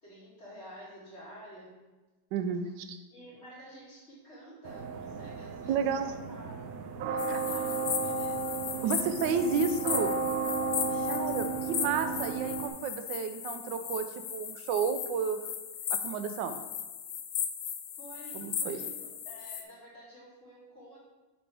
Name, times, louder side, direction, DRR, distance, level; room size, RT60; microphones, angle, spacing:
voice 1, 0.0-1.7 2.6-2.7 3.1-6.6 7.0-9.0 10.7-11.3 18.0-21.0, equal, 35° left, -8 dB, 2.8 m, -51 dB
voice 2, 2.3-3.0 5.7-6.1 7.3-7.4 8.8-10.2 11.1-15.4 16.0-16.6 18.3-18.8, right 6 dB, 90° right, 8 dB, 1.3 m, -31 dB
sound 1, 4.6-12.7, right 4 dB, 70° right, 0.9 m, -34 dB
sound 2, 7.2-19.6, left 8 dB, 80° left, 1.3 m, -37 dB
6.7 x 5.5 x 3.4 m, 1.2 s
omnidirectional pair, 1.9 m